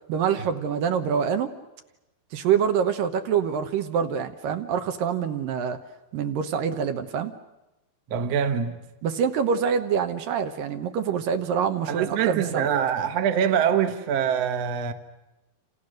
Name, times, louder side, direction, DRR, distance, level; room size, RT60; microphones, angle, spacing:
voice 1, 0.1-1.5 2.3-5.8 6.1-7.3 9.0-12.7, right 7 dB, 70° right, 2.7 m, -25 dB
voice 2, 8.1-8.8 11.9-14.9, right 8 dB, 55° right, 2.1 m, -24 dB
28.5 x 28.0 x 6.5 m
omnidirectional pair, 4.3 m